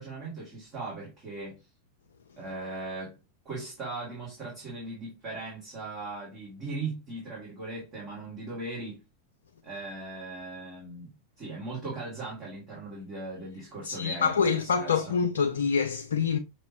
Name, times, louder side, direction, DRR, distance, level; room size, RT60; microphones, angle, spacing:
voice 1, 0.0-1.6 2.4-3.2 3.5-9.0 9.6-11.1 11.4-15.2, right 3 dB, 30° right, 2.1 m, -38 dB
voice 2, 13.8-16.4, left 6 dB, 70° left, 0.4 m, -26 dB
6.0 x 3.0 x 2.9 m
figure-of-eight pair, 90°, 0 cm